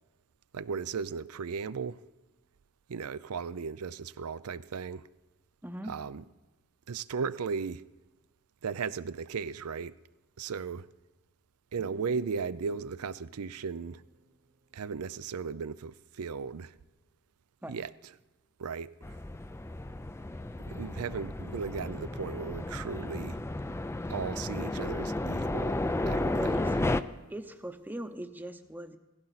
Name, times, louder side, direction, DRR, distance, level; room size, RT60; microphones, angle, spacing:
voice 1, 0.5-2.0 2.9-5.1 5.9-6.2 6.9-7.9 8.6-10.0 10.4-10.9 11.7-14.0 14.7-16.7 17.7-17.9 18.6-19.2 20.7-23.4 24.1-25.8 26.1-26.6, right 5 dB, 80° right, 0.5 m, -36 dB
voice 2, 5.6-5.9 17.6-17.8 26.3-26.8 27.3-29.0, right 1 dB, 10° right, 0.8 m, -40 dB
sound 1, 11.8-15.4, right 3 dB, 40° right, 0.8 m, -52 dB
sound 2, 19.0-27.0, left 2 dB, 10° left, 0.4 m, -33 dB
18.0 x 15.5 x 4.1 m
head